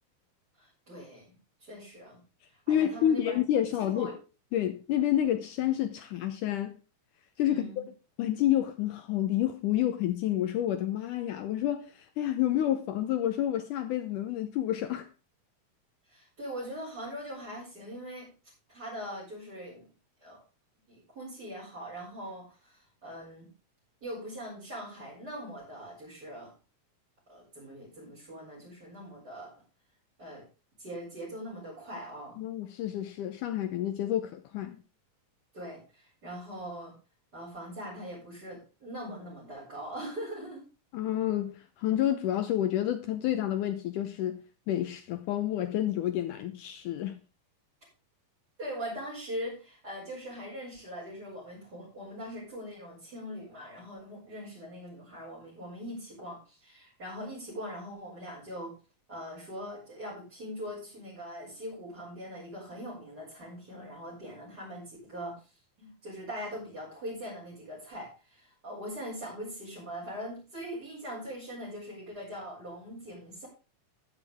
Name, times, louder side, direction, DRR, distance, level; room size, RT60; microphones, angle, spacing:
voice 1, 0.6-1.3 1.6-2.2 2.7-3.4 3.8-4.1 7.5-7.8 16.1-18.3 18.7-19.8 20.2-20.4 20.9-23.5 24.0-26.5 27.3-29.5 30.2-30.5 30.8-32.4 35.5-36.9 37.3-40.7 48.6-58.8 59.1-65.4 65.8-73.5, equal, 25° right, 6.8 m, -41 dB
voice 2, 2.7-4.1 4.5-6.8 7.4-7.8 8.2-15.1 32.4-34.8 40.9-44.4 44.7-47.2, left 11 dB, 75° left, 2.0 m, -29 dB
12.5 x 11.0 x 3.5 m
omnidirectional pair, 4.3 m